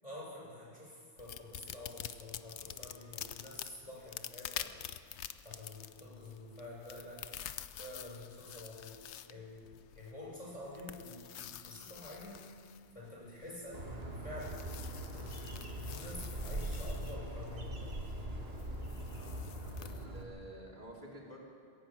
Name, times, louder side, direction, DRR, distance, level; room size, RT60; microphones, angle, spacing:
voice 1, 0.0-4.8 5.1-7.3 7.8-9.7 9.9-12.4 12.9-14.7 15.1-18.1, left 1 dB, 30° left, -5 dB, 6.8 m, -49 dB
sound 1, 1.2-20.0, left 10 dB, 85° left, 1.0 m, -48 dB
Bird, 13.7-20.2, right 1 dB, 65° right, 2.4 m, -41 dB
voice 2, 19.8-21.4, equal, 45° right, -3 dB, 4.1 m, -50 dB
21.0 x 15.5 x 9.0 m, 2.2 s
omnidirectional pair, 1.1 m